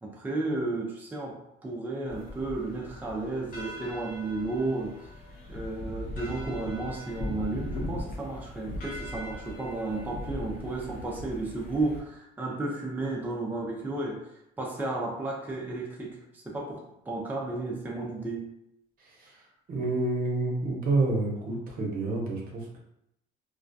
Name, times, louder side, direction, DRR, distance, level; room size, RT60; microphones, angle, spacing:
voice 1, 0.0-5.0 5.5-14.3 14.6-16.2 16.4-18.5, right 2 dB, 10° right, -2 dB, 0.5 m, -33 dB
sound 1, 2.1-12.0, left 1 dB, 60° left, 0.7 m, -39 dB
voice 2, 19.7-22.8, right 2 dB, 55° right, -1 dB, 0.7 m, -28 dB
2.3 x 2.1 x 2.6 m, 0.78 s
cardioid pair, 110°, 17 cm